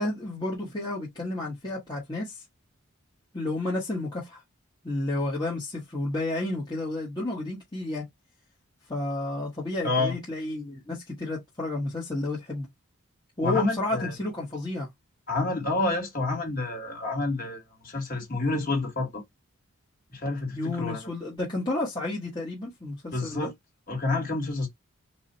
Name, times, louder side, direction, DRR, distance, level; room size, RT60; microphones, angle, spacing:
voice 1, 0.0-2.4 3.3-4.4 4.8-8.0 8.9-12.7 13.4-14.9 20.5-23.5, left 2 dB, 20° left, 1.4 m, -31 dB
voice 2, 9.8-10.1 13.4-14.1 15.3-19.2 20.1-21.0 23.1-23.5 23.9-24.7, left 2 dB, 40° left, 2.2 m, -28 dB
4.8 x 2.5 x 2.7 m
head